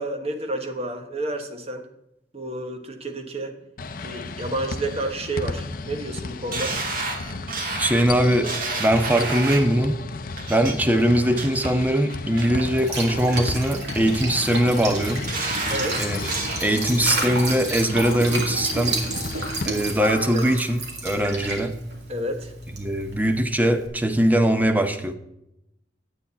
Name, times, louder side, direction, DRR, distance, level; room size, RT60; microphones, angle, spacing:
voice 1, 0.0-1.8 2.3-3.5 4.0-6.8 15.7-16.1 20.3-20.5 22.1-22.5, right 1 dB, 35° right, 1.2 m, -30 dB
sound 1, 3.8-19.7, left 3 dB, 55° left, 0.6 m, -34 dB
sound 2, 6.5-9.8 10.4-10.7 11.1-11.7 12.1-12.6 13.1-13.7 14.1-14.6 15.0-16.6 17.0-17.6 18.0-18.1, right 3 dB, 55° right, 1.7 m, -31 dB
voice 2, 7.8-10.0 10.5-15.2 16.0-16.3 16.6-19.0 19.6-21.7 22.8-25.1, right 1 dB, 10° right, 0.7 m, -21 dB
Liquid, 12.6-23.9, right 2 dB, 85° right, 2.4 m, -31 dB
9.8 x 8.6 x 4.0 m
head